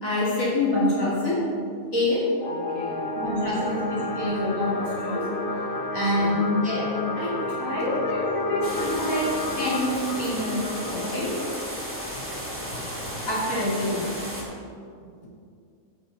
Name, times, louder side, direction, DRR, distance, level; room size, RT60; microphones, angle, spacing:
voice 1, 0.0-1.4 1.9-2.3 3.1-5.3 5.9-9.3 9.5-11.4 13.3-14.1, left 1 dB, 70° left, -8 dB, 3.0 m, -26 dB
sound 1, 2.4-13.5, left 2 dB, 45° left, 1.0 m, -32 dB
voice 2, 2.5-3.1 3.4-3.8 6.1-6.6 7.8-8.6 13.0-13.1, left 1 dB, 90° left, -2 dB, 2.2 m, -39 dB
sound 2, 8.6-14.4, equal, 10° right, 2.0 m, -34 dB
12.0 x 8.6 x 4.0 m, 2.3 s
omnidirectional pair, 1.5 m